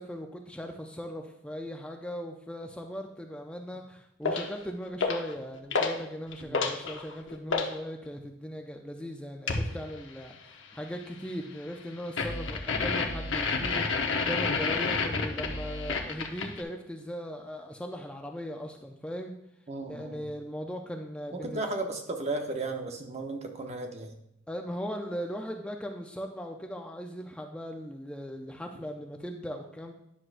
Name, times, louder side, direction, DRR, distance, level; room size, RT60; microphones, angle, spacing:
voice 1, 0.0-19.3 19.9-21.7 24.5-29.9, equal, 5° left, 3 dB, 0.4 m, -39 dB
sound 1, 4.2-4.5 5.0-5.3 5.7-6.0 6.3-7.7 9.5-9.7 12.2-16.6, left 4 dB, 75° left, 0.8 m, -29 dB
voice 2, 19.7-20.3 21.3-24.1, right 2 dB, 35° right, 4 dB, 0.8 m, -35 dB
9.7 x 6.2 x 2.5 m, 0.78 s
head